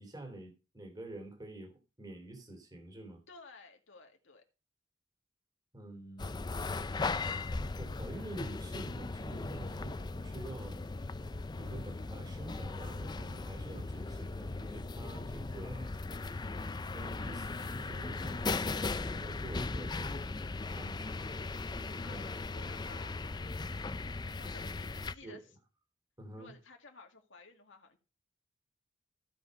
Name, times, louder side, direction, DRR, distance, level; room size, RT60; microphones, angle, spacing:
voice 1, 0.0-3.2 5.7-6.4 7.8-10.8 11.5-15.9 16.9-21.3 21.9-22.3 24.2-24.5 25.2-25.4 26.2-26.5, right 2 dB, 20° right, 2.7 m, -48 dB
voice 2, 3.3-4.4 22.0-23.2 24.4-25.5 26.4-28.0, left 3 dB, 80° left, 2.0 m, -54 dB
sound 1, 6.2-25.1, left 3 dB, 20° left, 0.4 m, -38 dB
15.0 x 5.3 x 5.2 m
head